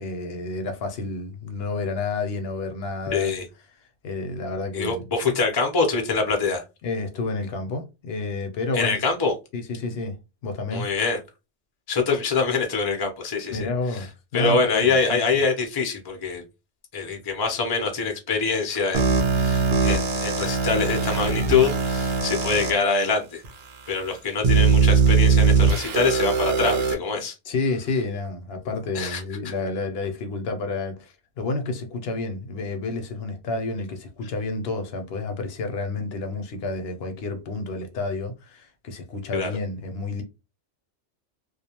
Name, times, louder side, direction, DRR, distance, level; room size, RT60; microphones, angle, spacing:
voice 1, 0.0-3.3 4.0-5.0 6.8-9.0 9.5-10.2 10.4-10.9 13.5-15.4 27.5-40.2, left 3 dB, 65° left, 0.7 m, -30 dB
voice 2, 3.1-3.5 4.7-6.6 8.7-9.3 10.7-11.2 11.9-14.1 14.3-16.4 16.9-23.4 23.9-27.4 28.9-29.2 39.3-39.5, left 4 dB, 35° left, 0.3 m, -24 dB
sound 1, 18.9-22.7 23.4-23.5 24.4-26.9, right 5 dB, 65° right, 0.8 m, -20 dB
2.4 x 2.2 x 2.8 m
omnidirectional pair, 1.2 m